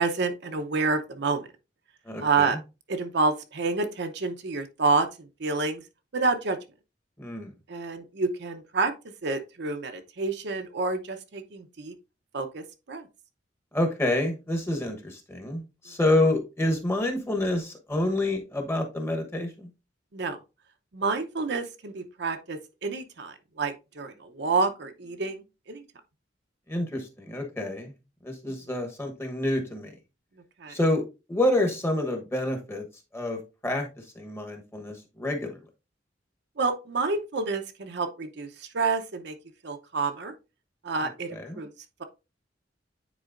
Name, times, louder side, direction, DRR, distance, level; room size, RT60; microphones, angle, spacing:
voice 1, 0.0-1.5 2.2-2.6 2.9-5.8 6.1-6.6 7.7-8.9 9.2-11.9 12.3-13.1 20.1-20.4 20.9-25.8 28.5-28.6 30.6-30.8 36.6-39.4 39.6-40.3 40.8-41.7, right 4 dB, 65° right, 0.8 m, -28 dB
voice 2, 2.0-2.6 7.2-7.5 13.7-19.7 26.7-27.9 28.2-30.0 30.7-32.8 33.1-33.9 34.1-35.6 41.4-41.6, left 1 dB, 15° left, 1.0 m, -28 dB
9.3 x 4.2 x 2.5 m
head